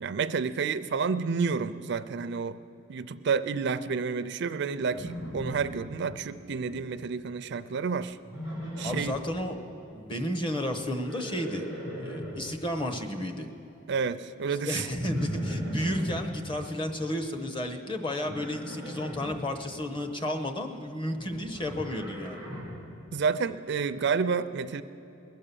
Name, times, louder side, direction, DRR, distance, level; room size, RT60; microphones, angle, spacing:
voice 1, 0.0-2.6 2.9-8.2 8.8-9.2 13.9-14.9 23.1-24.8, right 5 dB, 55° right, 13 dB, 0.4 m, -30 dB
Livestock farm animals working animals, 4.9-6.1 6.4-6.9 8.2-9.2 10.8-12.5 14.8-16.2 18.2-19.3 21.1-22.8, equal, 85° left, 4.4 m, -37 dB
voice 2, 8.8-9.6 9.9-11.7 11.9-13.5 14.6-22.4, left 1 dB, 25° left, 5 dB, 1.0 m, -32 dB
20.5 x 8.6 x 6.9 m, 2.9 s
head